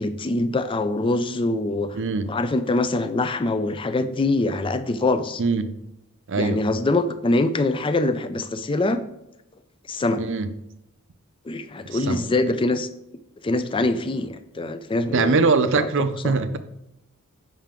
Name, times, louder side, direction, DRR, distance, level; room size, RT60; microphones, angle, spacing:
voice 1, 0.0-2.0 2.3-5.4 6.4-9.0 9.9-10.2 11.5-12.9 13.4-15.4 15.7-15.9 16.2-16.3, left 2 dB, 25° left, 0.4 m, -24 dB
voice 2, 1.9-2.3 5.4-5.7 6.3-6.6 10.2-10.5 11.9-12.3 15.1-16.6, right 4 dB, 55° right, 0.6 m, -22 dB
7.5 x 5.6 x 3.7 m
head